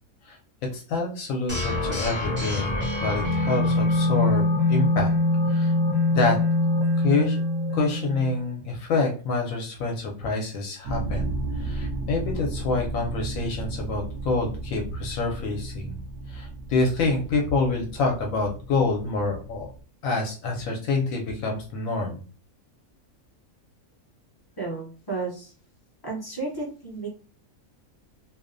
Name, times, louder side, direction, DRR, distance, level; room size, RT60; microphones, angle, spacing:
voice 1, 0.7-4.4 4.7-5.1 5.5-5.7 6.1-6.4 7.0-7.4 7.7-16.0 16.3-19.7 20.0-22.2, left 3 dB, 70° left, 1 dB, 0.9 m, -27 dB
sound 1, 1.5-8.4, left 2 dB, 10° right, 0.6 m, -24 dB
sound 2, 10.8-19.8, right 2 dB, 65° right, 0.8 m, -34 dB
voice 2, 24.6-25.5 26.0-27.1, right 3 dB, 40° left, -4 dB, 0.3 m, -32 dB
2.7 x 2.0 x 2.5 m, 0.37 s
omnidirectional pair, 1.6 m